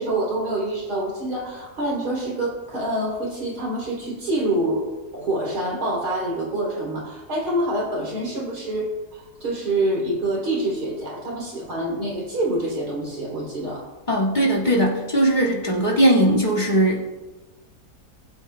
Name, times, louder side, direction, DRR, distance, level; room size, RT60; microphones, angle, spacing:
voice 1, 0.0-4.9 5.1-13.8, right 1 dB, 85° right, -4 dB, 3.8 m, -26 dB
voice 2, 14.1-17.0, right 1 dB, 30° left, -4 dB, 2.0 m, -19 dB
20.5 x 8.1 x 2.2 m, 1.2 s
omnidirectional pair, 1.7 m